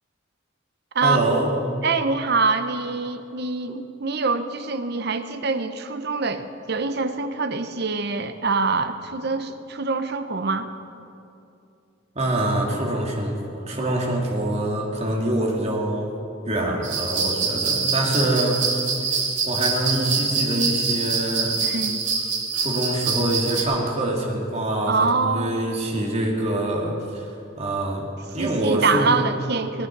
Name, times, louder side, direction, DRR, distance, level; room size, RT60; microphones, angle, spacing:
voice 1, 1.0-1.5 12.1-16.1 16.5-18.6 19.1-21.6 22.5-29.2, right 1 dB, 35° right, -1 dB, 2.4 m, -25 dB
voice 2, 1.8-10.7 21.6-22.0 24.9-25.6 28.4-29.9, right 4 dB, 55° right, 9 dB, 0.8 m, -25 dB
sound 1, 16.8-23.6, right 5 dB, 70° right, 2.6 m, -25 dB
19.5 x 10.5 x 6.0 m, 2.6 s
head